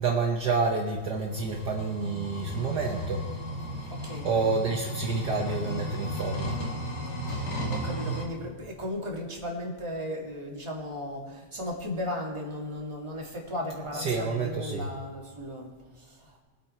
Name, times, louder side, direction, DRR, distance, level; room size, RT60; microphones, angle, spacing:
voice 1, 0.0-3.2 4.2-6.5 13.9-14.9, right 4 dB, 70° right, 0 dB, 1.0 m, -28 dB
sound 1, 1.3-8.2, right 1 dB, 70° left, 3.5 m, -34 dB
voice 2, 7.3-16.4, left 1 dB, 10° right, -2 dB, 1.7 m, -36 dB
22.0 x 8.7 x 4.3 m, 1.4 s
omnidirectional pair, 3.3 m